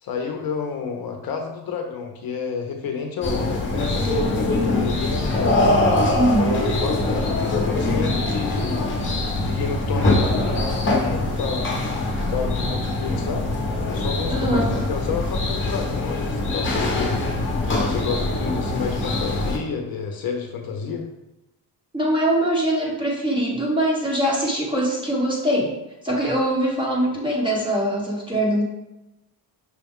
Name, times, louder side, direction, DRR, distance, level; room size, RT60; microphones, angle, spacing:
voice 1, 0.0-5.7 6.4-8.9 9.4-11.8 12.3-13.5 13.9-21.1, left 5 dB, 55° left, 3 dB, 0.7 m, -30 dB
sound 1, 3.2-19.6, left 2 dB, 30° left, 0.9 m, -23 dB
voice 2, 6.1-6.6 14.3-14.7 21.9-25.7 26.0-28.6, right 1 dB, 10° right, -4 dB, 1.0 m, -22 dB
6.1 x 2.2 x 3.5 m, 0.91 s
cardioid pair, 150°, 42 cm